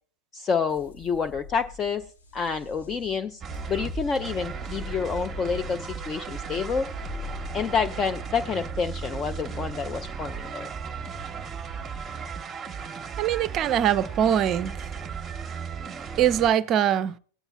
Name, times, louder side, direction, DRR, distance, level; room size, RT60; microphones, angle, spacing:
voice 1, 0.3-3.4 3.7-6.9 7.5-10.7, left 5 dB, 20° left, 0.4 m, -28 dB
sound 1, 0.7-14.9, left 2 dB, 70° left, 1.7 m, -43 dB
sound 2, 3.4-16.5, right 6 dB, 15° right, 0.9 m, -36 dB
voice 2, 13.2-14.9 16.2-17.1, right 10 dB, 35° right, 0.5 m, -22 dB
19.5 x 8.8 x 2.3 m
figure-of-eight pair, 90°, 0 cm